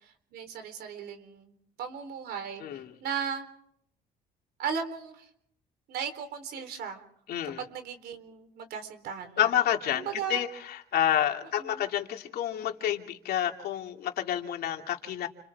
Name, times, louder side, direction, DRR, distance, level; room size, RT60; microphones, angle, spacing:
voice 1, 0.0-3.5 4.6-5.3 5.9-7.0 7.6-9.5 9.9-10.4 11.6-11.8, right 7 dB, 70° right, 7 dB, 3.9 m, -36 dB
voice 2, 2.6-2.9 7.3-7.6 9.4-15.3, left 11 dB, 65° left, 3 dB, 2.7 m, -29 dB
29.0 x 27.5 x 3.6 m, 0.69 s
cardioid pair, 110°, 17 cm